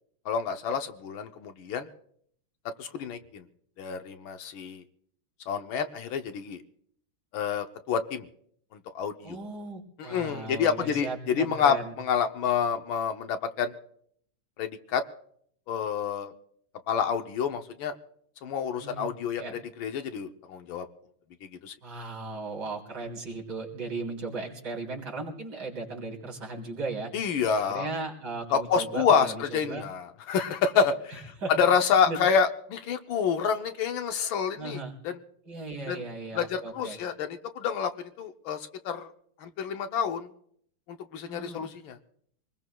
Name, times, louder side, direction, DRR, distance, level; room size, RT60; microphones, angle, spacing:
voice 1, 0.2-1.9 2.8-3.4 3.8-4.8 5.5-6.6 7.3-8.3 8.7-9.4 10.0-13.7 14.6-15.0 15.7-16.3 16.9-18.0 18.4-19.4 19.8-20.9 21.6-21.7 27.1-27.9 28.5-35.2 35.9-36.0 36.3-39.1 39.4-40.3 40.9-42.0, left 6 dB, 70° left, 7 dB, 1.5 m, -28 dB
voice 2, 9.2-11.9 18.8-19.1 19.4-19.6 21.8-27.1 27.7-29.8 31.1-31.5 32.1-32.2 34.6-34.9 35.5-37.0 41.2-41.7, right 3 dB, 50° right, -2 dB, 3.9 m, -37 dB
26.0 x 20.0 x 2.2 m, 0.66 s
omnidirectional pair, 2.3 m